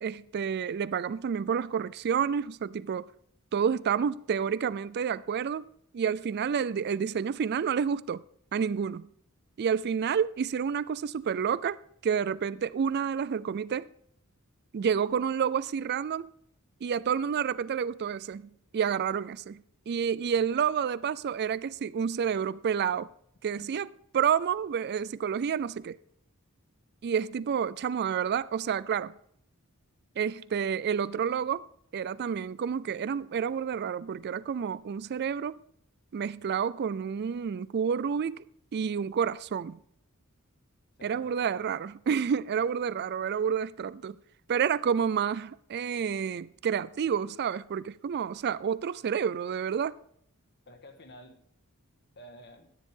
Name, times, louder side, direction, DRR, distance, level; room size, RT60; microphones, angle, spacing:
voice 1, 0.0-3.1 3.5-8.2 8.5-9.1 9.6-13.9 14.7-16.3 16.8-19.6 19.9-23.1 23.4-23.9 24.1-26.0 27.0-29.1 30.2-31.7 31.9-35.6 36.1-38.4 38.7-39.8 41.0-44.2 44.5-50.0, right 7 dB, 50° right, 0.4 m, -29 dB
voice 2, 23.6-23.9 41.0-41.6 50.7-51.5 52.2-52.7, left 1 dB, 50° left, 1.6 m, -50 dB
12.5 x 10.0 x 3.7 m
head